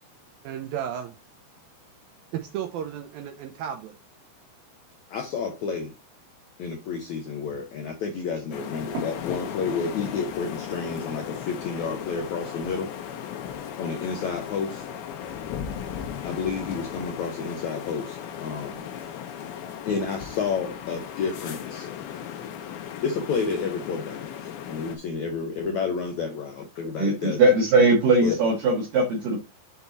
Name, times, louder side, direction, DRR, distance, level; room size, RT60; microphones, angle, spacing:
voice 1, 0.4-1.1 2.3-4.0, right 9 dB, 80° right, 2.2 m, -33 dB
voice 2, 5.1-5.9 6.6-12.9 13.8-14.9 16.2-18.9 19.8-21.9 23.0-24.3 24.7-27.4 28.2-28.4, left 5 dB, 90° left, 1.6 m, -30 dB
sound 1, 8.5-25.0, left 9 dB, 75° left, 2.8 m, -36 dB
voice 3, 27.0-29.4, right 2 dB, 60° right, 3.0 m, -20 dB
7.3 x 4.6 x 4.1 m
omnidirectional pair, 4.8 m